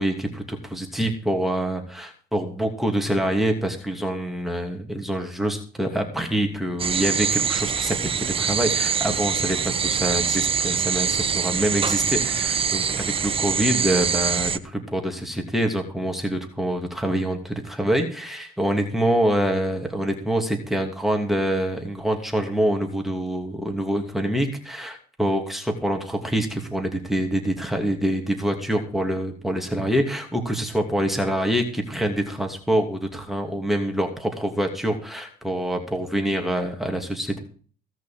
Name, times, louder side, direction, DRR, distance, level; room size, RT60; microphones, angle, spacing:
voice 1, 0.0-37.4, right 1 dB, ahead, 3 dB, 2.8 m, -25 dB
sound 1, 6.8-14.6, right 6 dB, 35° right, 1.0 m, -24 dB
17.0 x 6.2 x 7.7 m, 0.42 s
cardioid pair, 110°, 17 cm